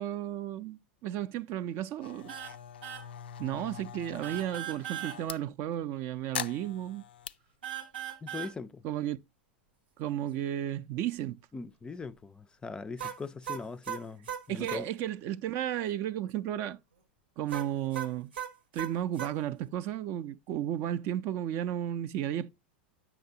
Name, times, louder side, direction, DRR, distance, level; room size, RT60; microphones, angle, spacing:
voice 1, 0.0-2.3 3.4-7.0 8.8-9.2 10.0-11.4 14.5-16.8 17.4-18.3 18.7-22.5, right 11 dB, 50° right, 0.4 m, -33 dB
sound 1, 2.0-5.4 6.3-7.3, left 9 dB, 85° left, 0.3 m, -42 dB
sound 2, 2.3-2.6 2.8-3.1 4.2-5.2 7.6-8.5 13.0-14.8 17.5-19.3, right 10 dB, 90° right, 1.0 m, -38 dB
voice 2, 8.2-8.8 11.5-14.9, left 4 dB, 15° left, 0.4 m, -41 dB
8.4 x 5.9 x 2.7 m
hypercardioid pair, 105°, 5 cm